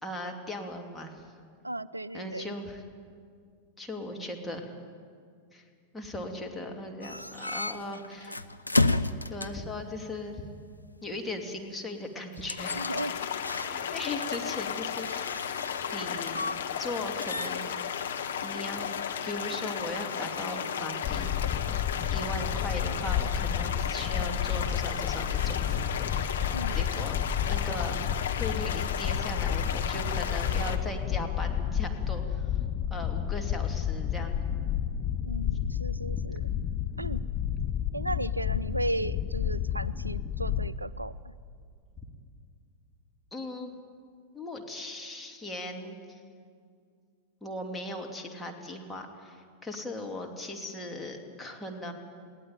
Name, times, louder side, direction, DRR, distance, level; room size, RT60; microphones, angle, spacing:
voice 1, 0.0-1.2 2.1-2.8 3.8-4.7 5.5-5.6 5.9-8.4 9.3-10.4 11.0-12.8 13.6-15.5 15.9-16.4 16.8-18.0 18.4-18.9 19.2-21.6 22.1-26.4 26.7-27.2 27.5-28.0 28.4-32.5 32.9-34.4 43.3-43.7 44.3-46.2 47.4-51.9, left 1 dB, 5° left, 1 dB, 2.7 m, -38 dB
voice 2, 1.6-2.5 12.8-13.1 26.5-26.8 35.3-36.4 37.0-37.2 37.9-41.3, right 1 dB, 85° right, 19 dB, 0.5 m, -35 dB
sound 1, 7.0-9.7 12.3-14.0 14.2-16.9 17.2-20.6, left 2 dB, 85° left, 0.6 m, -33 dB
sound 2, 12.6-30.8, left 8 dB, 65° left, 1.4 m, -34 dB
sound 3, 21.0-40.7, left 9 dB, 35° left, 1.0 m, -31 dB
22.0 x 18.0 x 9.1 m, 2.3 s
figure-of-eight pair, 90°, 0 cm